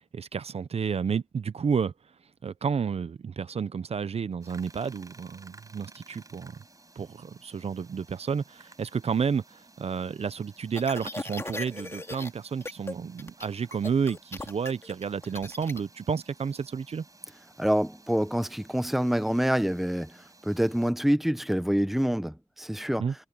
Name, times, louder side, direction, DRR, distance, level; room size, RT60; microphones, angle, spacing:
voice 1, 0.1-1.9 2.4-6.6 7.0-17.0 23.0-23.1, right 6 dB, 65° right, 0.6 m, -31 dB
sound 1, 4.4-20.9, right 2 dB, 30° right, 5.0 m, -56 dB
sound 2, 10.7-12.3 12.6-12.9 13.2-15.8, left 2 dB, 25° left, 2.3 m, -38 dB
voice 2, 17.6-23.1, equal, ahead, 0.9 m, -26 dB
wide cardioid pair, 85°, 11 cm